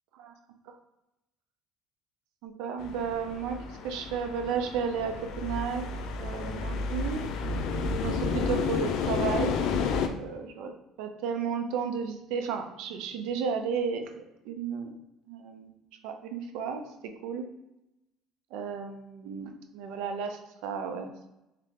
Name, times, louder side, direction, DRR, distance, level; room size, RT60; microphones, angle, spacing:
voice 1, 2.4-5.8 6.2-7.2 8.0-9.5 9.8-14.9 15.3-15.7 16.0-17.5 18.5-21.3, right 6 dB, 75° right, 6 dB, 0.6 m, -33 dB
sound 1, 2.8-10.1, left 5 dB, 70° left, 0.5 m, -31 dB
3.6 x 2.8 x 3.6 m, 0.92 s
supercardioid pair, 100°, 0 cm